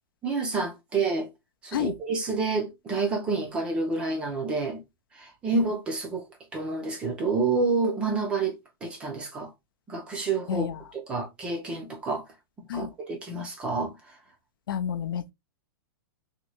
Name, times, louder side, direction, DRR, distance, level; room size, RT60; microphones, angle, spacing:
voice 1, 0.2-1.3 1.6-4.8 5.2-6.2 6.5-9.5 9.9-10.7 10.9-12.2 12.7-14.0, right 3 dB, 10° right, 0.4 m, -28 dB
voice 2, 10.5-10.8 12.7-12.9 14.7-15.3, left 9 dB, 60° left, 0.5 m, -30 dB
2.8 x 2.7 x 2.9 m
supercardioid pair, 180°, 13 cm